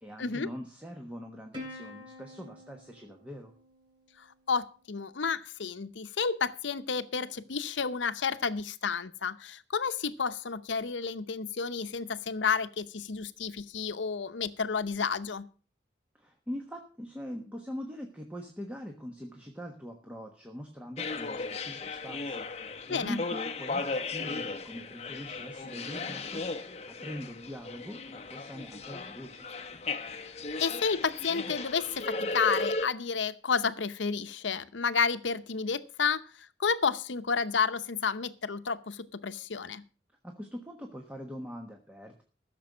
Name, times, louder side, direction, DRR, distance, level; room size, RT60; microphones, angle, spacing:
voice 1, 0.0-3.5 16.1-26.5 26.9-29.5 40.2-42.2, equal, 5° right, 1.2 m, -42 dB
Plucked string instrument, 1.5-4.3, left 2 dB, 25° right, 3.4 m, -47 dB
voice 2, 4.2-15.5 22.9-23.2 30.6-39.8, left 5 dB, 90° left, 0.8 m, -31 dB
sound 1, 21.0-32.9, left 3 dB, 35° left, 0.9 m, -36 dB
14.5 x 6.9 x 6.2 m
head